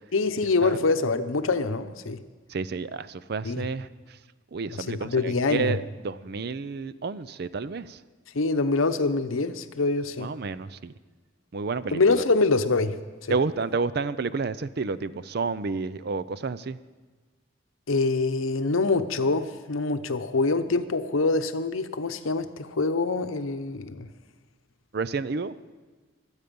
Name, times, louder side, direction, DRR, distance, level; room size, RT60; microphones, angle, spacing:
voice 1, 0.1-2.2 3.4-3.7 4.7-5.8 8.3-10.3 11.9-13.3 17.9-24.1, left 3 dB, 85° left, 10 dB, 0.8 m, -25 dB
voice 2, 2.5-3.9 4.5-8.0 10.2-10.9 11.5-12.2 13.3-16.8 24.9-25.6, right 4 dB, 50° right, 16 dB, 0.5 m, -30 dB
23.0 x 8.2 x 5.3 m, 1.4 s
head